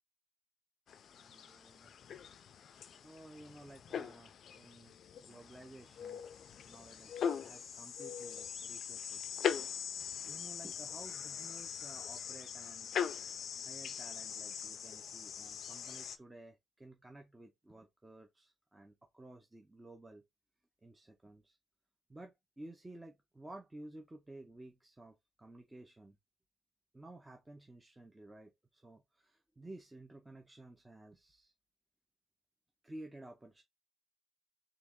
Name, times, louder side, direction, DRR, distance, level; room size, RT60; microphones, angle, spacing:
sound 1, 0.9-16.2, left 8 dB, 55° left, 0.4 m, -41 dB
voice 1, 1.1-1.9 3.0-4.9 5.2-6.2 6.6-9.2 10.2-12.9 13.6-20.2 20.8-21.6 22.1-26.2 26.9-31.5 32.8-33.6, right 1 dB, 10° right, 0.6 m, -54 dB
3.8 x 2.9 x 3.5 m
cardioid pair, 155°, 0 cm